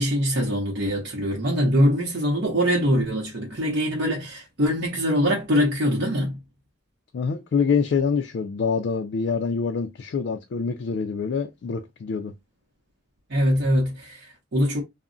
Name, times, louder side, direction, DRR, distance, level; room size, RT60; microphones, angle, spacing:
voice 1, 0.0-6.4 13.3-14.8, equal, 60° right, 0.8 m, -23 dB
voice 2, 7.1-12.3, left 5 dB, 60° left, 0.3 m, -25 dB
2.3 x 2.0 x 3.7 m
head